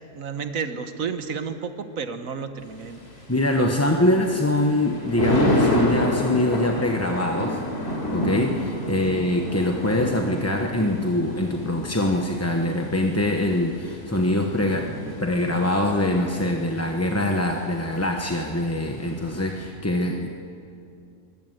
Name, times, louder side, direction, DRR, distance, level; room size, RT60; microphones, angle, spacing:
voice 1, 0.1-3.0 8.9-9.2, right 6 dB, 60° right, 9 dB, 1.5 m, -31 dB
Thunder, 2.6-19.7, left 1 dB, 40° left, 3.8 m, -30 dB
voice 2, 3.3-7.6 8.1-14.9 15.2-20.3, left 1 dB, 10° left, 2 dB, 0.8 m, -23 dB
23.0 x 16.5 x 7.9 m, 2.5 s
omnidirectional pair, 1.7 m